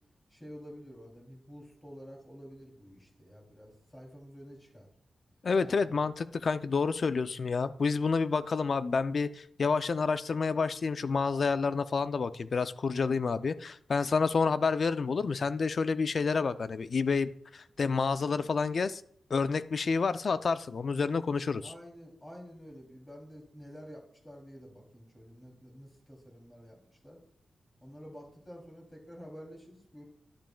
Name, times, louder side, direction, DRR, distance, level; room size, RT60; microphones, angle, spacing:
voice 1, 0.3-4.9 5.6-6.1 21.6-27.2 27.8-30.0, equal, 15° left, -1 dB, 2.8 m, -49 dB
voice 2, 5.4-19.0 19.3-21.7, left 4 dB, 55° left, 13 dB, 0.4 m, -29 dB
11.5 x 10.5 x 2.3 m, 0.68 s
wide cardioid pair, 100°, 0 cm